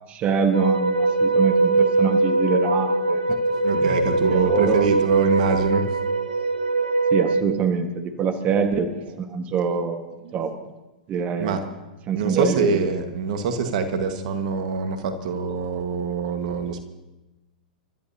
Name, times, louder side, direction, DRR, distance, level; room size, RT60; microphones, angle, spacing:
voice 1, 0.1-3.4 3.7-4.8 7.1-8.9 9.2-10.5 11.1-11.6 12.1-12.7, right 6 dB, 30° right, 6 dB, 1.7 m, -25 dB
sound 1, 0.5-7.4, right 3 dB, 85° right, 1.0 m, -22 dB
voice 2, 3.6-5.8 8.2-8.3 9.0-9.2 9.7-9.8 10.2-10.3 11.4-11.6 12.1-16.8, right 5 dB, 60° right, 6 dB, 1.7 m, -24 dB
30.0 x 14.0 x 2.9 m, 1.0 s
hypercardioid pair, 110°, 5 cm